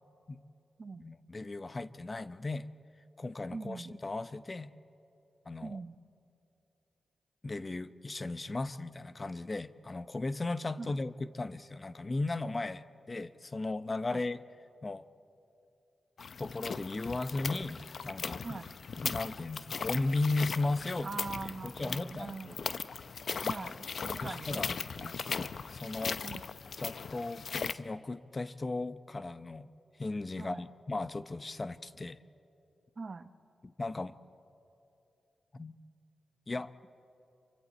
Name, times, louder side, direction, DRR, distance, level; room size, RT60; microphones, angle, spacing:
voice 1, 1.0-2.7 3.2-4.7 5.5-5.8 7.4-14.4 14.8-15.0 16.4-18.6 19.0-21.1 21.4-22.7 24.2-24.7 25.3-26.2 26.8-29.7 30.0-32.2 33.6-34.1 35.5-35.8 36.5-36.7, left 2 dB, 40° left, 13 dB, 0.8 m, -36 dB
voice 2, 3.5-4.0 5.6-6.0 10.8-11.0 14.1-14.2 18.4-18.7 21.0-22.7 23.4-24.6 24.9-25.1 26.2-26.4 30.4-30.6 33.0-33.3, right 4 dB, 55° right, 11 dB, 1.0 m, -42 dB
sound 1, 16.2-27.7, left 5 dB, 65° left, 0.6 m, -38 dB
28.5 x 24.0 x 4.3 m, 2.8 s
supercardioid pair, 40°, 0 cm